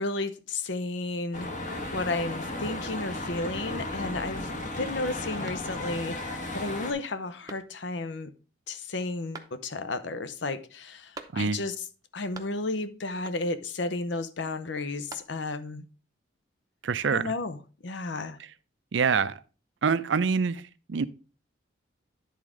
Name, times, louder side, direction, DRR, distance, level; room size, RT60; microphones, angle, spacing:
voice 1, 0.0-1.5 1.9-4.5 4.8-8.3 8.7-11.8 12.1-15.9 17.1-18.4, left 2 dB, 70° left, 0.7 m, -33 dB
sound 1, 1.3-6.9, left 1 dB, 40° left, 1.2 m, -35 dB
sound 2, 5.4-6.1 6.6-6.7 7.4-8.1 9.3-10.0 11.1-11.8 12.0-12.8 13.2-13.7 14.7-15.7, right 3 dB, 20° right, 0.7 m, -47 dB
voice 2, 16.8-17.3 18.9-19.4 19.8-20.6 20.9-21.0, right 5 dB, 75° right, 0.5 m, -25 dB
10.5 x 3.7 x 4.9 m
head